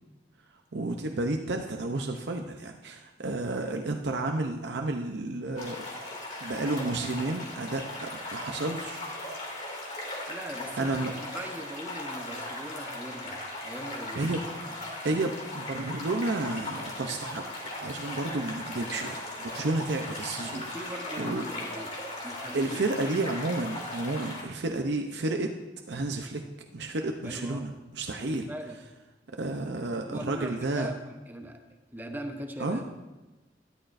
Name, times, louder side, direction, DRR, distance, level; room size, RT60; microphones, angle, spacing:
voice 1, 0.7-5.8 6.4-9.0 10.8-11.1 14.1-14.4 15.0-17.4 17.8-21.4 22.5-25.5 25.9-26.4 26.7-28.5 29.3-30.9 32.6-32.8, right 2 dB, 70° right, 3 dB, 0.7 m, -31 dB
sound 1, 5.6-24.4, left 1 dB, 40° left, 2.5 m, -38 dB
voice 2, 10.3-11.0 11.3-14.4 14.7-14.8 20.5-23.0 27.2-27.7 28.2-28.8 30.1-31.7 31.9-32.8, equal, 10° right, 5 dB, 0.8 m, -40 dB
13.0 x 11.5 x 2.6 m, 1.1 s
head